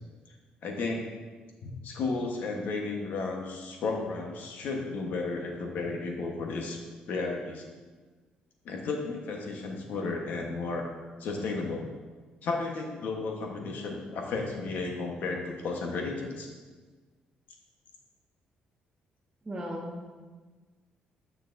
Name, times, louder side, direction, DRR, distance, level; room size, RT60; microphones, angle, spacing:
voice 1, 0.6-1.1 1.6-6.8 7.1-7.6 8.6-10.9 11.2-11.9 12.4-16.5, left 3 dB, 75° left, 1 dB, 1.1 m, -33 dB
voice 2, 19.4-20.1, equal, 15° right, -6 dB, 1.2 m, -36 dB
9.1 x 6.5 x 2.6 m, 1.4 s
cardioid pair, 90°, 3 cm